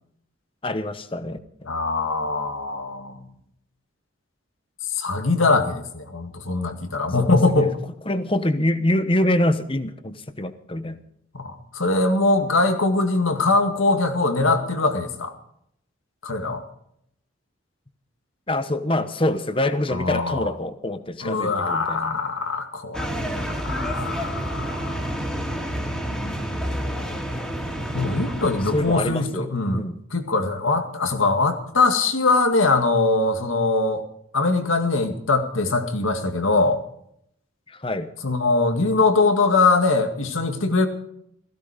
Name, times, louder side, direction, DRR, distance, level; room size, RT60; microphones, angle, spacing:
voice 1, 0.6-1.4 7.2-7.3 7.6-7.7 8.1-11.0 18.5-22.2 28.7-30.0 37.7-38.1, left 1 dB, 25° left, 11 dB, 1.0 m, -25 dB
voice 2, 1.6-3.3 4.9-7.8 11.3-15.3 16.2-16.6 19.9-20.5 21.2-25.1 27.9-29.8 30.1-34.0 34.3-36.8 38.2-40.9, left 3 dB, 85° left, 6 dB, 2.1 m, -22 dB
sound 1, 22.9-29.2, equal, 5° left, 2.3 m, -29 dB
16.0 x 16.0 x 5.0 m, 0.72 s
head